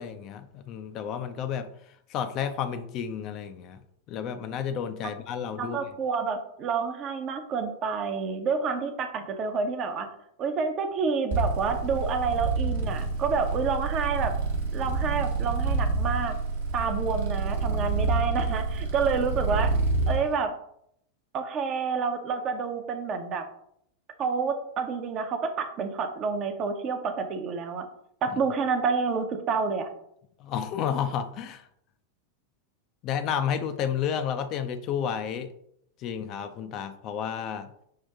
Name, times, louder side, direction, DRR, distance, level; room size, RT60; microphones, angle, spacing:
voice 1, 0.0-1.7 2.1-3.8 4.1-5.8 28.3-28.4 30.4-31.7 33.0-35.5 36.0-37.7, left 8 dB, 35° left, 9 dB, 0.4 m, -31 dB
voice 2, 5.6-10.1 10.4-14.3 14.7-16.3 16.7-19.7 20.1-20.5 21.3-23.4 24.2-27.9 28.2-29.9, right 5 dB, 35° right, 7 dB, 0.6 m, -28 dB
sound 1, 11.3-20.2, right 3 dB, 55° right, 1.0 m, -28 dB
5.6 x 2.6 x 3.5 m, 0.72 s
figure-of-eight pair, 90°, 0 cm